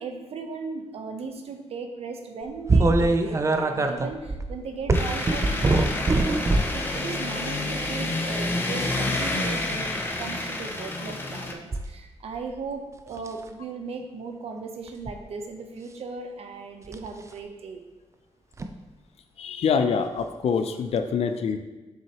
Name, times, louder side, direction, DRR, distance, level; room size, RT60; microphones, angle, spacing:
voice 1, 0.0-5.8 6.2-6.4 6.7-9.9 10.2-17.8, right 4 dB, 65° right, 4 dB, 0.8 m, -37 dB
sound 1, 2.7-6.8 7.5-7.8 9.6-10.0 11.7-11.9 12.4-12.7 13.2-13.4 14.9-15.2 16.9-17.1 18.6-18.7 20.2-20.3 21.0-21.1, right 2 dB, 25° right, 0.5 m, -23 dB
sound 2, 4.9-11.5, left 2 dB, 20° left, 0.8 m, -29 dB
voice 2, 19.4-21.6, left 6 dB, 70° left, 7 dB, 0.5 m, -25 dB
7.3 x 6.1 x 3.0 m, 1.2 s
wide cardioid pair, 130°, 11 cm